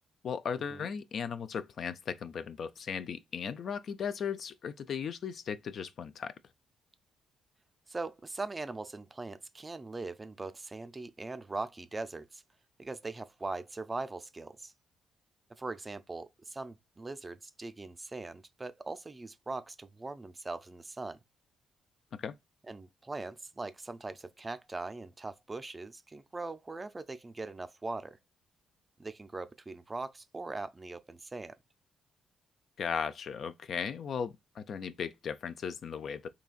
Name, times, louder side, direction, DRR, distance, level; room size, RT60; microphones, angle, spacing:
voice 1, 0.2-6.3 22.1-22.4 32.8-36.3, left 7 dB, 60° left, 0.4 m, -37 dB
voice 2, 7.9-12.4 12.8-14.7 15.5-21.2 22.7-28.2 29.0-31.6, right 3 dB, 20° right, 0.4 m, -41 dB
3.9 x 2.7 x 2.4 m
cardioid pair, 90°, 0 cm